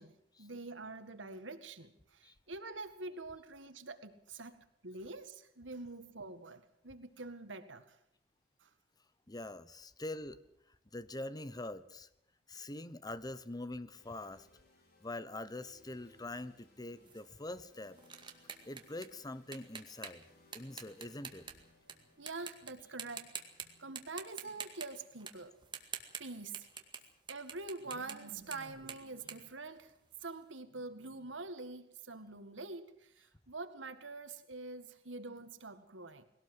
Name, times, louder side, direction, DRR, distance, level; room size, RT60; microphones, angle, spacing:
voice 1, 0.0-8.0 8.6-8.7 22.2-25.5 26.2-26.7 27.3-29.9 30.2-36.2, right 3 dB, 85° right, 9 dB, 2.0 m, -46 dB
voice 2, 9.3-10.4 10.9-12.1 12.5-14.5 15.0-18.0 18.6-20.3 20.5-21.5, left 2 dB, 20° left, 14 dB, 1.0 m, -44 dB
sound 1, 13.9-27.8, left 2 dB, 55° left, 5.4 m, -68 dB
sound 2, 17.1-21.9 22.3-22.7 23.0-23.7 24.0-27.0 27.3-30.3, right 6 dB, 25° right, 2.1 m, -47 dB
21.0 x 18.0 x 7.9 m, 0.74 s
head